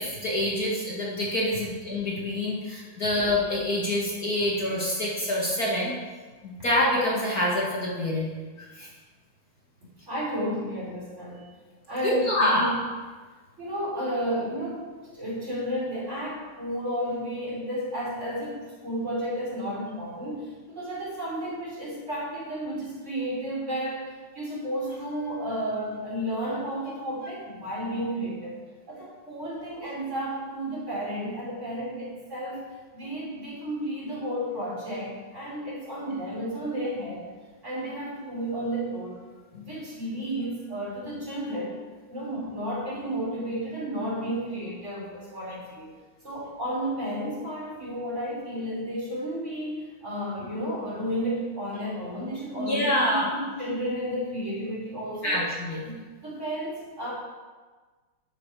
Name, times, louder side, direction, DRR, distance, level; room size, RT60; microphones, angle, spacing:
voice 1, 0.0-5.9 6.4-8.3 8.6-8.9 12.0-12.7 52.6-53.3 55.2-55.8, left 1 dB, 45° left, -4 dB, 2.4 m, -26 dB
voice 2, 10.1-11.5 11.9-12.8 13.6-28.6 28.9-32.6 32.9-37.3 37.6-41.8 42.1-45.9 46.2-55.5 55.8-56.0 56.2-57.1, equal, 35° right, -6 dB, 4.7 m, -32 dB
12.0 x 10.0 x 4.9 m, 1.4 s
omnidirectional pair, 2.3 m